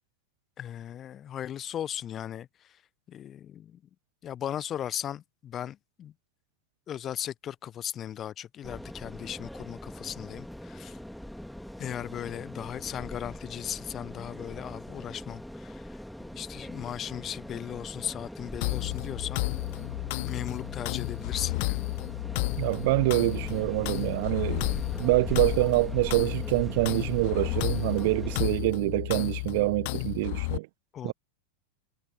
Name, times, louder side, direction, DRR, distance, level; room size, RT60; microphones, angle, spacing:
voice 1, 0.6-2.5 3.1-3.8 4.2-6.1 6.9-11.0 11.8-19.4 20.3-21.8 30.9-31.1, left 10 dB, 25° left, 1.0 m, -37 dB
sound 1, 8.6-28.5, equal, ahead, 2.8 m, -41 dB
sound 2, 18.6-30.6, left 25 dB, 50° left, 0.5 m, -32 dB
voice 2, 22.6-24.7 25.0-30.7 31.0-31.1, right 22 dB, 50° right, 1.1 m, -26 dB
figure-of-eight pair, 90°, 0 cm